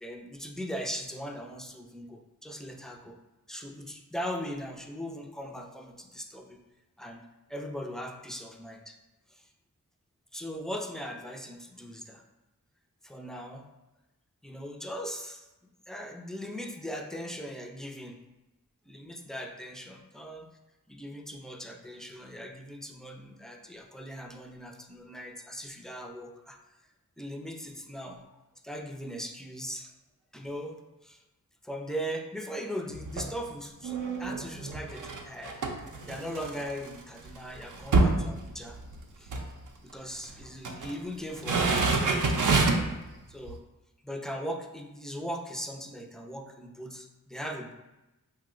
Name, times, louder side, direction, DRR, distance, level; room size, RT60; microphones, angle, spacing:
voice 1, 0.0-3.2 3.5-6.6 7.0-7.2 7.5-9.0 9.3-9.5 10.3-12.2 13.0-13.7 14.4-18.2 18.8-20.5 20.9-26.6 27.2-28.4 28.6-29.9 30.3-30.8 31.0-31.2 31.6-38.8 39.2-39.3 39.8-43.0 43.3-43.6 44.0-47.7, equal, ahead, 2 dB, 0.3 m, -39 dB
sound 1, 32.9-33.4 33.8-36.9 37.3-37.4 37.6-39.0 39.3-39.5 40.3-40.9 41.3-43.0 43.5-43.6, right 3 dB, 65° right, 0.5 m, -27 dB
2.7 x 2.0 x 3.7 m, 0.99 s
wide cardioid pair, 50°, 34 cm